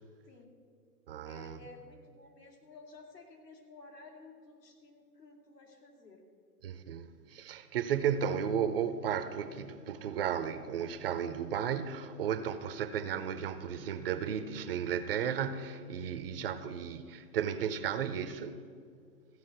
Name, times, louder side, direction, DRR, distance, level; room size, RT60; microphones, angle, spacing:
voice 1, 0.2-0.5 1.2-6.2, left 3 dB, 85° left, 2.9 m, -54 dB
voice 2, 1.1-1.6 6.6-18.6, right 8 dB, 40° right, 0.6 m, -34 dB
15.0 x 5.2 x 7.9 m
hypercardioid pair, 130°, 47 cm